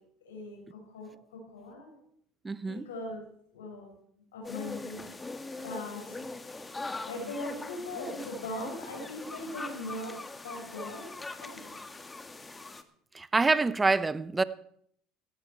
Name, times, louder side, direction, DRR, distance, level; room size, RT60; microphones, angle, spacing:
voice 1, 0.2-2.0 2.7-3.3 3.5-3.9 4.3-5.1 5.6-6.2 7.1-11.8, left 2 dB, 85° left, 6.2 m, -40 dB
voice 2, 2.4-2.9 13.1-14.4, right 3 dB, 20° right, 0.8 m, -26 dB
sound 1, 4.4-12.8, left 3 dB, 15° left, 1.6 m, -41 dB
17.0 x 13.0 x 4.6 m
hypercardioid pair, 75°, 0 cm